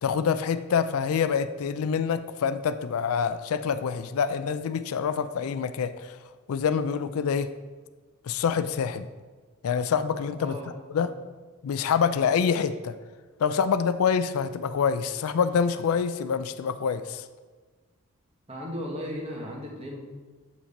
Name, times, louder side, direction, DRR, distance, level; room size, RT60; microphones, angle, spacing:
voice 1, 0.0-6.2 6.5-7.5 8.2-9.1 9.6-10.6 10.9-11.2 11.6-13.0 13.4-17.3, left 6 dB, 70° left, 12 dB, 0.3 m, -26 dB
voice 2, 10.4-10.7 11.0-11.1 18.5-20.0, equal, 25° right, 0 dB, 1.1 m, -36 dB
7.2 x 5.8 x 4.1 m, 1.4 s
head